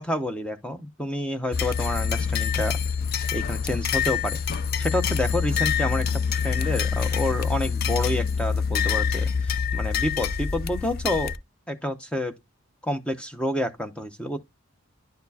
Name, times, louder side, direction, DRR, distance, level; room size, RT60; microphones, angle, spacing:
voice 1, 0.0-2.8 3.3-4.4 4.8-6.1 6.3-11.3 11.7-12.3 12.8-14.4, left 1 dB, 5° left, 0.7 m, -29 dB
sound 1, 1.5-11.4, left 6 dB, 45° left, 0.4 m, -26 dB
Keyboard (musical), 6.6-8.4, left 2 dB, 40° right, 1.2 m, -52 dB
10.5 x 4.2 x 2.8 m
head